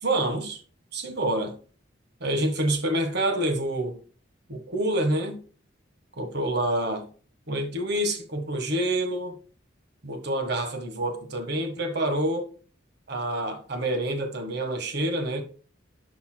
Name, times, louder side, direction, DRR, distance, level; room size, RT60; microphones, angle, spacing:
voice 1, 0.0-0.6 0.9-1.6 2.2-4.0 4.5-5.4 6.2-7.1 7.5-9.3 10.0-12.5 13.1-15.4, right 1 dB, 60° right, 1.6 m, -27 dB
10.5 x 5.6 x 2.3 m
head